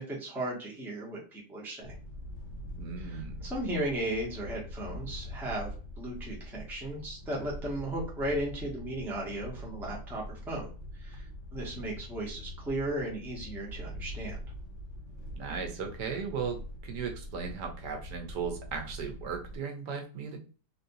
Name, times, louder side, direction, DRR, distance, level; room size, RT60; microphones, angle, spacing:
voice 1, 0.0-1.9 3.0-10.7 11.0-11.2 11.5-14.4, right 1 dB, ahead, -3 dB, 0.7 m, -36 dB
sound 1, 1.8-19.6, equal, 55° left, 1.0 m, -43 dB
voice 2, 2.8-3.4 15.4-16.6 16.8-20.4, right 6 dB, 85° right, 3 dB, 1.4 m, -36 dB
3.3 x 2.8 x 2.6 m, 0.37 s
omnidirectional pair, 1.8 m